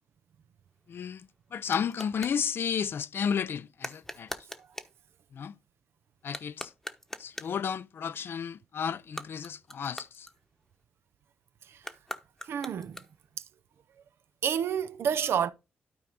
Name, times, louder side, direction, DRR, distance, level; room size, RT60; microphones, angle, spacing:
sound 1, 0.7-2.4 3.8-5.0 6.2-7.7 9.0-10.8 11.8-13.4, left 1 dB, 10° left, 1.0 m, -43 dB
voice 1, 0.9-4.3 5.3-5.5 6.2-6.7 7.2-10.3, left 7 dB, 60° left, 0.5 m, -32 dB
voice 2, 12.5-13.0 14.4-15.5, right 8 dB, 75° right, 0.6 m, -29 dB
12.5 x 4.5 x 3.9 m
cardioid pair, 60°, 4 cm